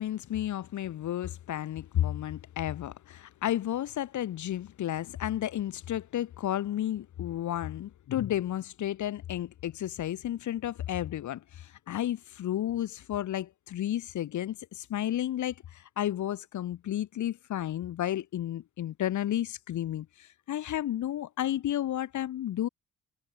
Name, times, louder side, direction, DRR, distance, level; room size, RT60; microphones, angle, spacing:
voice 1, 0.0-22.7, left 12 dB, 75° left, 3.9 m, -32 dB
cardioid pair, 90°, 30 cm